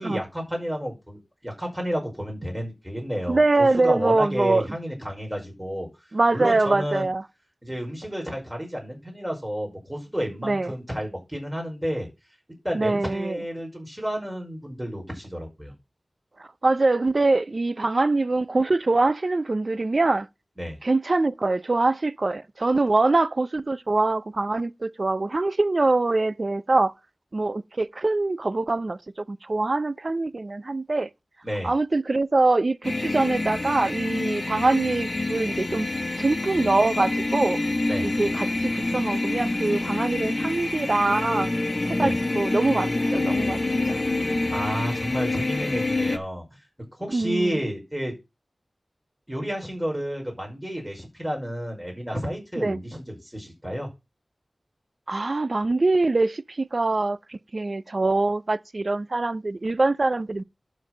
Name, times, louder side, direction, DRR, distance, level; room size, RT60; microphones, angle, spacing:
voice 1, 0.0-5.9 6.3-7.1 7.6-12.1 12.6-15.7 20.6-20.8 31.4-31.7 37.9-38.1 41.9-42.2 44.5-46.5 47.0-48.1 49.3-53.9, equal, 10° right, 5.3 m, -31 dB
voice 2, 3.3-4.7 6.1-7.2 10.4-10.7 12.7-13.4 16.4-20.3 20.8-26.9 27.3-29.0 29.3-31.1 31.6-35.9 36.2-37.6 38.0-41.5 41.9-43.6 43.9-44.0 47.1-47.6 52.6-52.8 55.1-60.4, right 2 dB, 50° right, 0.6 m, -23 dB
sound 1, 32.8-46.2, left 2 dB, 50° left, 1.3 m, -27 dB
11.5 x 4.7 x 6.1 m
wide cardioid pair, 75°, 0 cm